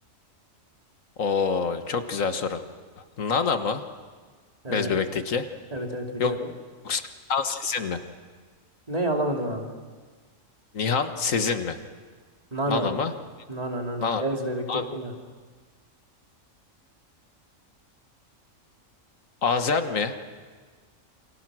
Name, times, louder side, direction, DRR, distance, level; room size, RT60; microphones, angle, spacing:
voice 1, 1.2-2.6 3.2-3.8 4.7-5.5 6.2-6.3 6.8-7.0 7.3-8.0 10.7-11.8 12.7-13.1 14.0-14.2 14.7-14.9 19.4-20.2, left 5 dB, 75° left, 8 dB, 1.8 m, -26 dB
voice 2, 4.6-4.9 5.7-6.5 8.9-9.7 12.5-12.9 13.5-15.1, right 1 dB, 30° right, 2 dB, 2.9 m, -29 dB
28.5 x 27.0 x 6.2 m, 1.5 s
omnidirectional pair, 1.4 m